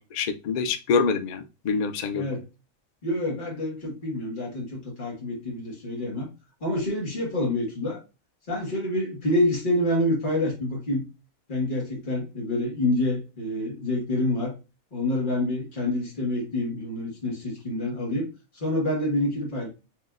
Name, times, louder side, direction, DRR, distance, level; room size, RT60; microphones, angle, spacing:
voice 1, 0.0-2.3, left 5 dB, 80° left, 7 dB, 0.4 m, -26 dB
voice 2, 2.1-2.5 3.0-6.3 6.6-8.0 8.5-11.1 11.5-14.5 14.9-18.3 18.5-19.7, left 1 dB, 35° left, -2 dB, 1.8 m, -27 dB
4.7 x 3.2 x 2.4 m, 0.28 s
omnidirectional pair, 1.5 m